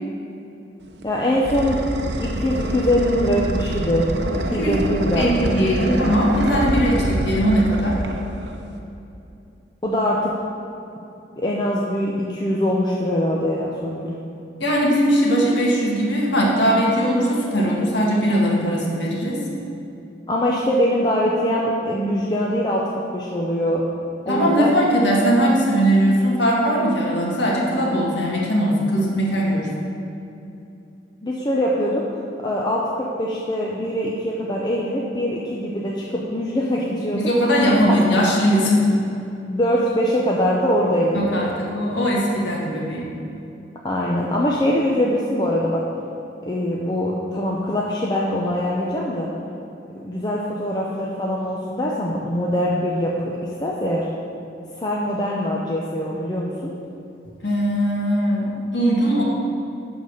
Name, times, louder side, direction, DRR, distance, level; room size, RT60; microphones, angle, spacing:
sound 1, 0.8-8.8, right 1 dB, 65° right, 0.7 m, -26 dB
voice 1, 1.0-1.8 2.2-4.1 4.5-6.1 9.8-10.3 11.4-14.1 20.3-23.8 24.3-24.7 31.2-32.0 32.4-36.1 36.3-37.2 39.5-41.4 43.8-45.8 46.4-49.3 50.0-53.1 53.6-54.1 54.8-56.7, equal, 25° left, -4 dB, 0.6 m, -23 dB
voice 2, 4.4-4.8 5.1-8.0 14.6-19.4 24.3-29.7 37.1-38.8 41.1-43.1 57.4-59.2, equal, 75° left, -3 dB, 1.7 m, -20 dB
10.5 x 4.0 x 6.6 m, 2.8 s
head